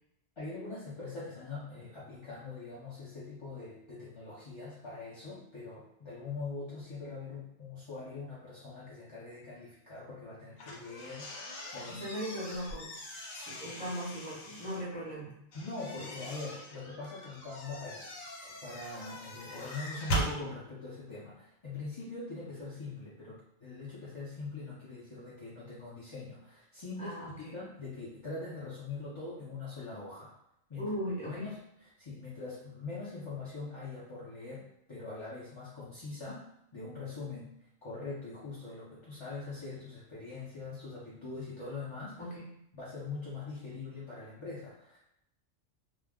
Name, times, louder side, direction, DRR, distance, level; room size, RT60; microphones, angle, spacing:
voice 1, 0.4-12.0 15.5-18.0 18.4-27.1 27.5-30.3 30.7-30.9 31.3-36.5 36.7-42.2 42.7-45.0, left 3 dB, 40° left, -10 dB, 0.4 m, -43 dB
sound 1, 10.6-14.8 15.5-20.3, right 1 dB, 85° left, 1.1 m, -40 dB
voice 2, 11.9-13.0 13.3-15.3 16.0-16.1 27.0-27.6 30.7-31.5 42.2-42.5, equal, 5° left, -8 dB, 0.8 m, -38 dB
2.3 x 2.0 x 3.4 m, 0.77 s
omnidirectional pair, 1.4 m